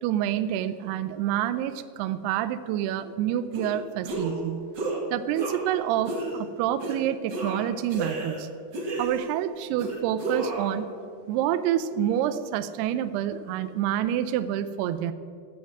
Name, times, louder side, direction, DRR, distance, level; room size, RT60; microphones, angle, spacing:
voice 1, 0.0-4.7 5.1-8.5 9.0-10.9 11.3-15.1, right 11 dB, 80° right, 12 dB, 2.4 m, -28 dB
sound 1, 3.5-3.7 4.0-4.4 4.7-5.0 5.3-5.7 6.1-6.3 6.8-7.0 7.3-8.4 8.7-9.4 9.8-10.7, right 2 dB, 60° right, 1.1 m, -32 dB
14.5 x 7.7 x 7.4 m, 2.2 s
omnidirectional pair, 5.1 m